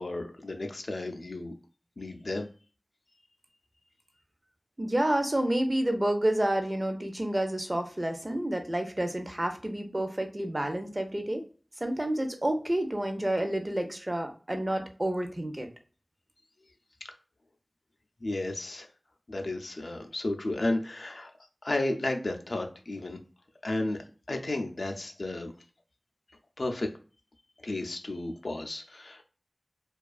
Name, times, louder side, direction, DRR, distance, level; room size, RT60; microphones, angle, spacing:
voice 1, 0.0-1.5 2.0-2.5 18.2-18.9 19.3-21.3 21.6-23.2 23.6-24.0 24.3-25.5 26.6-26.9 27.6-29.2, left 2 dB, 70° left, 4 dB, 0.3 m, -33 dB
voice 2, 4.8-11.4 11.8-15.7, right 1 dB, 30° right, 5 dB, 0.4 m, -29 dB
2.3 x 2.3 x 2.3 m, 0.38 s
wide cardioid pair, 60°, 0 cm